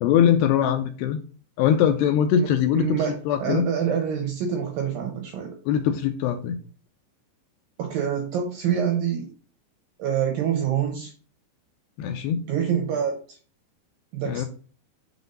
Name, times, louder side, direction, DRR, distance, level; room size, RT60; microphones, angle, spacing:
voice 1, 0.0-1.2 1.6-2.9 3.3-3.7 5.7-6.6 12.0-12.4 14.3-14.5, left 9 dB, 85° left, 6 dB, 2.5 m, -21 dB
voice 2, 2.7-5.6 7.8-9.3 10.0-11.1 12.5-13.4 14.1-14.5, right 8 dB, 80° right, 3 dB, 2.0 m, -26 dB
6.9 x 4.0 x 5.3 m, 0.41 s
omnidirectional pair, 5.4 m